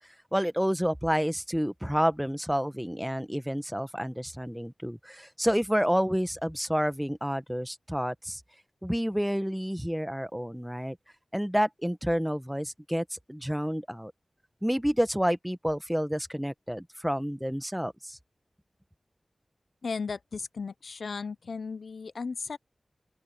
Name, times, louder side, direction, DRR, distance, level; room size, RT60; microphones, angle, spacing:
voice 1, 0.3-8.4 8.8-11.0 11.3-14.1 14.6-18.2, equal, 5° right, 1.1 m, -29 dB
voice 2, 19.8-22.6, left 4 dB, 85° left, 0.5 m, -35 dB
open air
wide cardioid pair, 65°, 0 cm